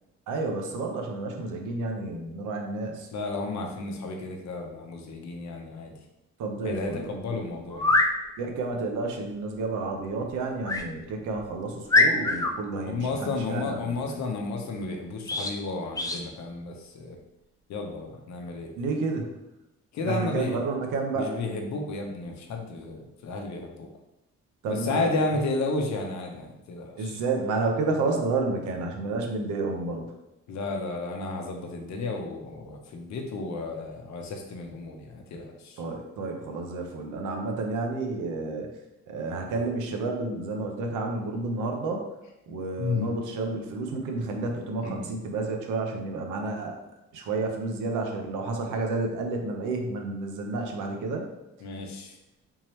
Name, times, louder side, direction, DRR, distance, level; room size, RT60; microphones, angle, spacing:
voice 1, 0.3-3.1 6.4-7.1 8.4-14.1 18.8-19.3 20.0-21.3 24.6-25.1 27.0-30.1 35.8-38.7 39.1-42.0 42.5-46.8 47.1-51.3, right 3 dB, 85° right, 2 dB, 0.7 m, -30 dB
voice 2, 3.1-5.9 6.6-8.0 12.9-17.2 17.7-18.7 19.9-20.6 21.1-23.9 24.7-27.2 30.5-35.8 42.8-43.2 44.8-45.1 51.6-52.1, left 3 dB, 65° left, 3 dB, 0.7 m, -32 dB
sound 1, 7.7-8.1 10.6-10.9 11.4-11.5 11.9-12.5 15.2-15.5 15.9-16.2, left 2 dB, 10° left, 0.4 m, -23 dB
3.7 x 2.9 x 3.1 m, 0.93 s
cardioid pair, 90°, 30 cm